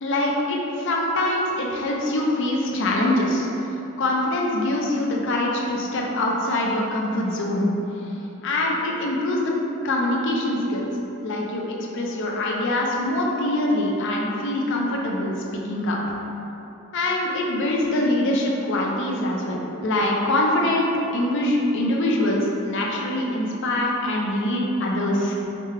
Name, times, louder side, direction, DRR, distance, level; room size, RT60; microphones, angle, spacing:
voice 1, 0.0-3.5 4.0-7.7 8.4-9.5 9.8-10.9 11.2-11.6 11.9-15.3 15.7-16.0 16.9-25.4, left 1 dB, 60° left, -2 dB, 0.5 m, -24 dB
5.1 x 2.1 x 3.3 m, 2.9 s
head